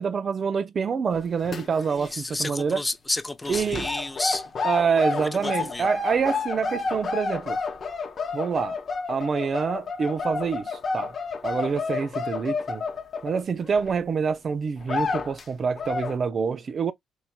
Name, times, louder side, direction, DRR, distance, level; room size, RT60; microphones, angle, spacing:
voice 1, 0.0-2.8 3.5-3.9 4.6-7.6 8.3-8.8 9.1-11.1 11.4-12.8 13.2-16.9, right 6 dB, 45° right, 0.4 m, -26 dB
sound 1, 1.1-2.1 2.3-2.6 3.4-13.9 14.4-14.5 14.8-15.4 15.8-16.2, left 4 dB, 45° left, 0.8 m, -30 dB
voice 2, 2.0-4.5 5.2-5.9, left 2 dB, 15° left, 0.5 m, -31 dB
4.5 x 2.7 x 2.2 m
cardioid pair, 90°, 0 cm